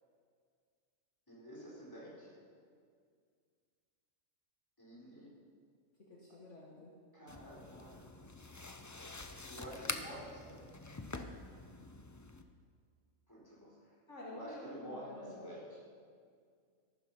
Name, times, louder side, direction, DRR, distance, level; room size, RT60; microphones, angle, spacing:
voice 1, 1.3-2.4 4.8-5.3 6.3-6.4 7.1-8.2 9.5-10.8 13.3-14.0 14.3-15.9, equal, 15° left, -7 dB, 4.4 m, -50 dB
voice 2, 6.1-6.9 14.1-15.5, left 1 dB, 55° left, -5 dB, 2.2 m, -49 dB
sound 1, 7.3-12.4, left 2 dB, 30° left, 0.3 m, -46 dB
14.0 x 11.5 x 5.7 m, 2.1 s
omnidirectional pair, 1.5 m